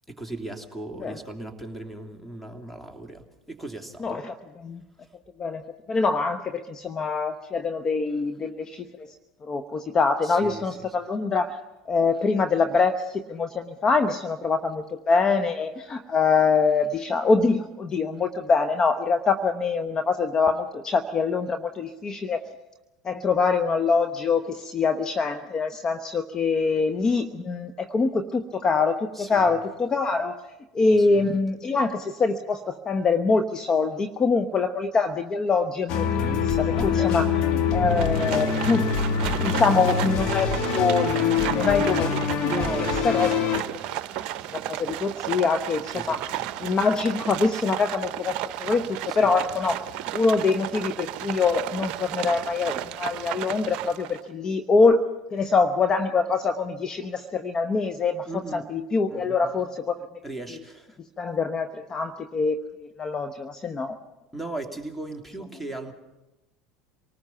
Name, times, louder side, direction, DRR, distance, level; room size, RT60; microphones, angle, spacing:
voice 1, 0.1-4.2 10.2-10.6 29.1-29.6 31.0-31.4 36.8-37.2 42.4-43.5 45.9-46.4 49.1-49.3 58.3-58.6 59.1-59.6 60.2-61.0 64.3-65.9, right 2 dB, 5° left, 4 dB, 2.8 m, -37 dB
voice 2, 4.0-4.8 5.4-5.6 5.9-9.1 9.4-11.6 11.9-22.4 23.0-30.4 30.7-36.1 36.4-37.4 37.7-38.9 39.2-43.3 44.2-46.3 46.6-49.8 50.1-60.0 60.5-60.6 61.2-64.0, left 4 dB, 30° left, 9 dB, 1.0 m, -24 dB
sound 1, 35.9-43.6, left 6 dB, 55° left, 2.0 m, -25 dB
Livestock farm animals working animals, 37.9-54.3, right 13 dB, 55° right, 0.7 m, -33 dB
27.5 x 19.0 x 5.8 m, 1.0 s
hypercardioid pair, 75°, 2 cm